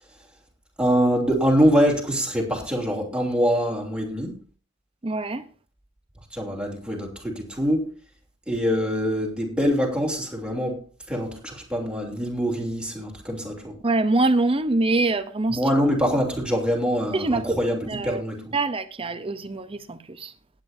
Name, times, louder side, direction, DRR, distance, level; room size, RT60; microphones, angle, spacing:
voice 1, 0.8-4.4 6.3-7.9 8.5-13.8 15.5-18.5, equal, 5° right, 3.0 m, -24 dB
voice 2, 5.0-5.5 13.8-15.6 17.1-17.6 17.9-18.2 18.5-20.3, right 2 dB, 25° right, 0.7 m, -24 dB
18.5 x 9.0 x 2.7 m
head